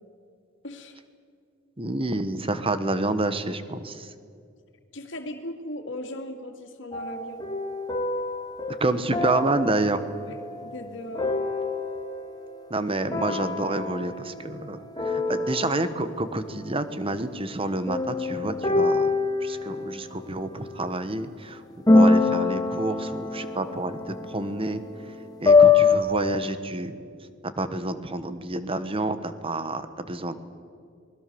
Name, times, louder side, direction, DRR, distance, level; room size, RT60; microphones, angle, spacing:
voice 1, 0.6-1.0 4.9-7.4 10.2-11.4, left 1 dB, 70° left, 5 dB, 2.6 m, -38 dB
voice 2, 1.8-4.1 8.8-10.0 12.7-19.1 19.4-21.6 21.9-24.8 25.4-26.9 27.4-30.4, right 2 dB, 30° right, 11 dB, 1.3 m, -28 dB
sound 1, 6.9-12.4 13.1-14.7 15.0-16.3 17.9-20.9 21.9-26.0, left 4 dB, 20° left, 2.1 m, -24 dB
29.0 x 20.5 x 7.0 m, 2.3 s
head